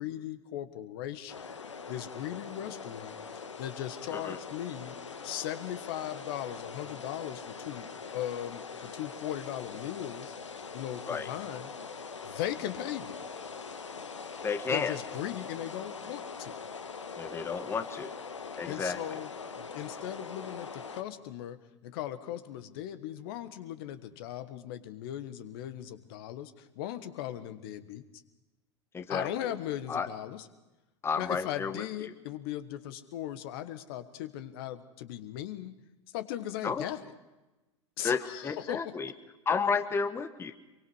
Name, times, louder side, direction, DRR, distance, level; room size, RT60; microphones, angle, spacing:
voice 1, 0.0-1.4 1.9-4.9 5.2-7.9 8.1-10.3 10.7-11.7 12.2-13.2 14.7-16.6 18.7-21.6 21.8-28.0 29.1-30.5 31.2-35.7 36.1-37.1 38.0-39.0, left 12 dB, 50° left, 11 dB, 1.4 m, -38 dB
sound 1, 1.3-21.0, left 5 dB, 75° left, 1.4 m, -43 dB
voice 2, 14.4-14.9 17.2-18.1 18.6-19.0 28.9-29.3 29.9-30.1 31.0-31.8 36.6-36.8 38.0-39.1 39.5-40.5, left 5 dB, 15° left, 10 dB, 1.1 m, -31 dB
24.5 x 23.5 x 4.8 m, 1.1 s
figure-of-eight pair, 85°, 15 cm